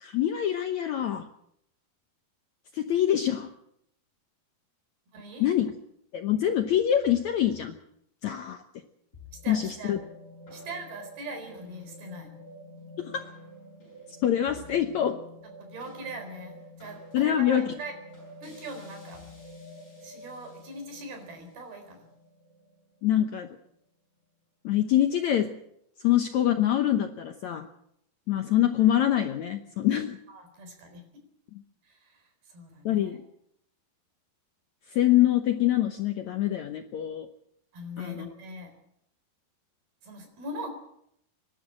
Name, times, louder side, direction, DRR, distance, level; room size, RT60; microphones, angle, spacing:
voice 1, 0.0-1.3 2.7-3.5 5.4-5.7 6.1-7.7 8.2-8.6 9.5-10.0 13.0-13.2 14.2-15.2 17.1-17.6 23.0-23.5 24.6-25.5 26.0-27.7 28.3-30.2 31.5-31.6 32.9-33.2 34.9-37.3 38.0-38.3, left 11 dB, 70° left, 6 dB, 1.8 m, -25 dB
voice 2, 5.1-5.5 9.4-9.9 10.5-12.3 15.6-17.9 18.4-19.2 20.0-22.0 30.3-31.0 31.8-33.2 37.7-38.7 40.0-40.7, right 1 dB, 75° right, 5 dB, 6.0 m, -41 dB
sound 1, 9.1-23.6, left 1 dB, 20° left, 8.4 m, -48 dB
25.0 x 12.0 x 8.8 m, 0.74 s
omnidirectional pair, 4.5 m